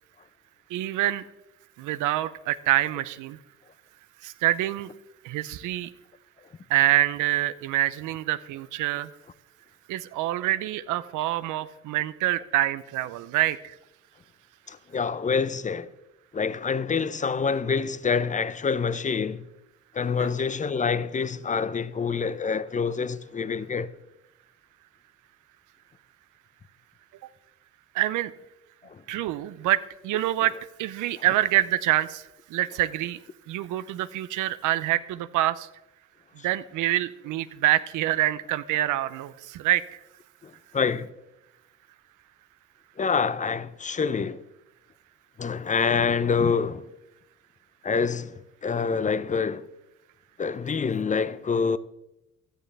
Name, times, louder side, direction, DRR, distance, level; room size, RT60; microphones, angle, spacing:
voice 1, 0.7-1.2 1.8-3.4 4.2-4.9 5.2-5.9 6.7-9.1 9.9-13.7 27.9-28.3 29.1-30.5 30.8-33.2 33.5-35.7 36.4-40.0, right 14 dB, 90° right, 0.6 m, -26 dB
voice 2, 14.7-15.9 16.3-19.5 19.9-23.9 28.9-29.0 40.4-41.1 43.0-44.4 45.4-46.8 47.8-49.7 50.4-51.8, left 5 dB, 25° left, 0.6 m, -26 dB
15.5 x 12.0 x 3.3 m
cardioid pair, 90°, 30 cm